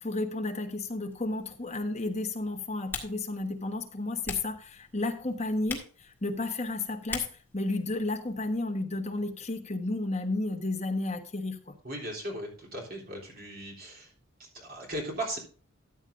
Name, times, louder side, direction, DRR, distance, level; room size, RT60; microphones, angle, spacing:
voice 1, 0.0-7.3 7.5-11.7, left 2 dB, 30° left, 4 dB, 1.2 m, -32 dB
Typing, 1.1-8.6, left 4 dB, 10° left, 1.9 m, -44 dB
voice 2, 11.8-14.1 14.4-15.4, right 1 dB, 45° right, -1 dB, 3.5 m, -37 dB
13.5 x 9.0 x 2.6 m, 0.41 s
head